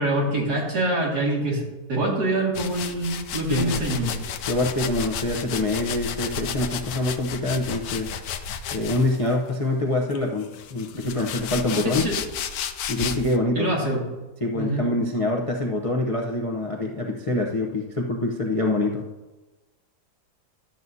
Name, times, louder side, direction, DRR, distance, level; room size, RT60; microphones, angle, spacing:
voice 1, 0.0-1.6 1.9-4.2 12.0-12.2 13.5-14.1 14.5-14.9, right 1 dB, 75° right, -3 dB, 2.7 m, -25 dB
sound 1, 2.5-9.3 10.1-13.4, left 7 dB, 70° left, 1.1 m, -33 dB
voice 2, 3.5-3.8 4.5-8.1 8.7-12.1 12.9-13.7 14.4-19.0, left 2 dB, 40° left, 0 dB, 0.5 m, -25 dB
12.0 x 7.5 x 2.7 m, 1.2 s
omnidirectional pair, 1.7 m